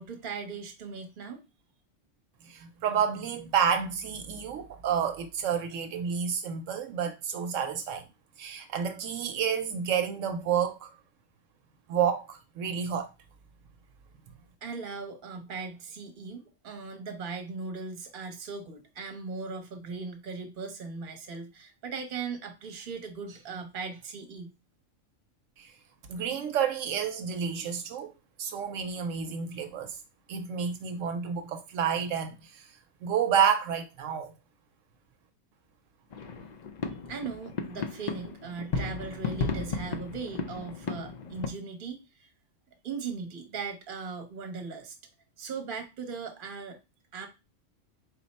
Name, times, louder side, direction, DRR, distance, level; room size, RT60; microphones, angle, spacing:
voice 1, 0.0-1.4 14.6-24.5 37.1-42.3 42.8-45.0 45.4-46.8 47.1-47.3, right 5 dB, 45° right, 0.9 m, -38 dB
voice 2, 2.4-8.0 8.4-10.9 11.9-13.1 25.6-25.7 26.1-28.1 28.4-30.0 30.3-32.6 33.0-34.3, right 7 dB, 80° right, 0.9 m, -29 dB
sound 1, 36.1-41.5, left 4 dB, 85° left, 0.3 m, -34 dB
4.1 x 2.1 x 4.0 m
omnidirectional pair, 1.3 m